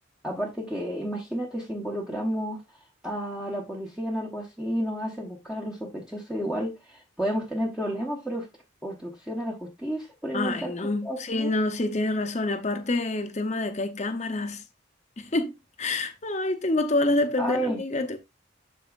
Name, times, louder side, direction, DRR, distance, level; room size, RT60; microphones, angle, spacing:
voice 1, 0.2-2.6 3.0-8.5 8.8-10.7 11.0-11.5 17.4-17.8, equal, 5° right, 1.0 m, -31 dB
voice 2, 10.3-14.6 15.2-18.2, left 2 dB, 35° left, 0.8 m, -27 dB
12.0 x 4.2 x 2.5 m
head